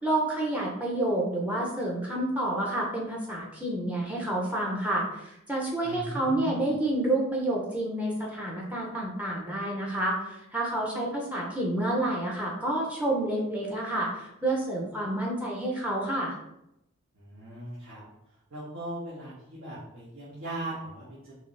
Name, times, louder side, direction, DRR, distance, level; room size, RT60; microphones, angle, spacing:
voice 1, 0.0-16.3, right 1 dB, 5° right, -2 dB, 0.7 m, -29 dB
voice 2, 5.8-6.6 17.1-18.0 18.5-21.3, right 1 dB, 65° right, -10 dB, 1.5 m, -39 dB
5.5 x 3.0 x 3.3 m, 0.84 s
head